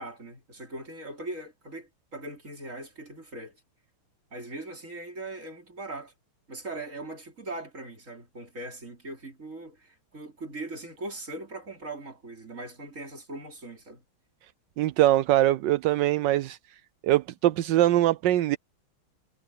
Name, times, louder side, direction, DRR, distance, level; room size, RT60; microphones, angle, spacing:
voice 1, 0.0-3.6 4.3-6.1 6.5-14.0, right 2 dB, 35° right, 4.4 m, -40 dB
voice 2, 14.8-16.6 17.0-18.6, right 14 dB, 70° right, 1.2 m, -22 dB
omnidirectional pair, 2.3 m